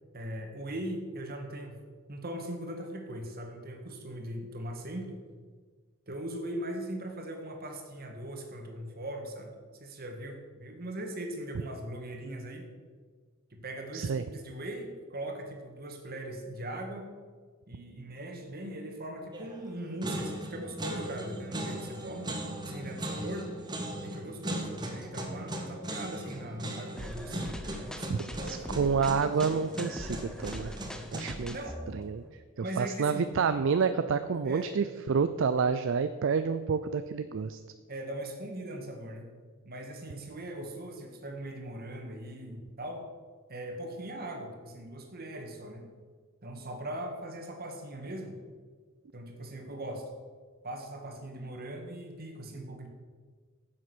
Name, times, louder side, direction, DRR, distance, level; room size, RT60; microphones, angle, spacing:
voice 1, 0.1-1.8 2.1-5.2 6.1-9.5 9.8-12.7 13.5-17.1 17.7-22.3 22.6-23.5 24.0-28.6 31.2-31.8 32.6-33.3 34.5-34.7 37.9-39.3 39.7-43.1 43.5-45.9 46.4-48.3 49.1-50.1 50.6-52.9, right 1 dB, 45° right, 3 dB, 1.8 m, -40 dB
voice 2, 13.9-14.2 28.1-28.2 28.5-30.7 31.1-31.6 31.9-32.2 32.6-37.6, right 5 dB, 65° right, 11 dB, 0.4 m, -29 dB
sound 1, 19.3-19.7 20.0-31.5, right 1 dB, 20° right, 1.3 m, -38 dB
sound 2, 27.0-32.4, equal, 5° left, 0.8 m, -42 dB
9.9 x 7.6 x 6.1 m, 1.5 s
head